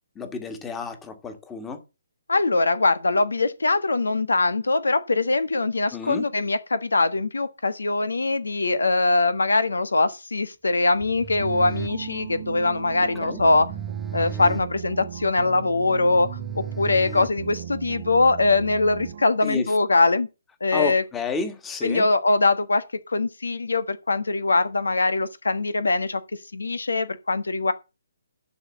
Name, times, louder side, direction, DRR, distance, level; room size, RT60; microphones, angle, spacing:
voice 1, 0.2-1.8 5.9-6.3 13.2-13.4 19.4-19.7 20.7-22.1, left 5 dB, 10° left, 1.7 m, -31 dB
voice 2, 2.3-13.7 14.1-20.3 20.6-21.0 21.8-22.8 23.1-26.2 26.5-27.7, left 3 dB, 85° left, 1.4 m, -22 dB
sound 1, 10.9-17.9, right 7 dB, 5° right, 0.7 m, -37 dB
sound 2, 11.4-19.5, right 9 dB, 50° right, 0.9 m, -37 dB
11.5 x 4.9 x 7.0 m
figure-of-eight pair, 145°, 0 cm